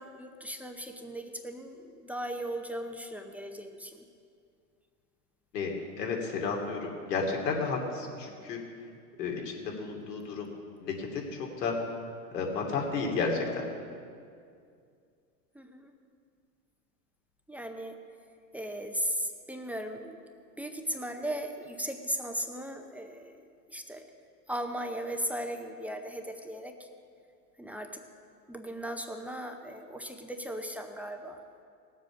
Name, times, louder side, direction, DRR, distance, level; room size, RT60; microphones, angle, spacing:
voice 1, 0.0-4.0 15.5-15.9 17.5-18.0 18.5-20.2 20.6-23.4 23.7-24.1 24.5-26.9 27.6-28.0 28.5-31.4, equal, 5° right, 4 dB, 0.5 m, -37 dB
voice 2, 5.5-8.6 9.2-10.5 10.8-11.3 11.6-11.7 12.3-13.6, left 4 dB, 75° left, 0 dB, 2.9 m, -32 dB
18.0 x 7.7 x 6.2 m, 2.3 s
hypercardioid pair, 110°, 49 cm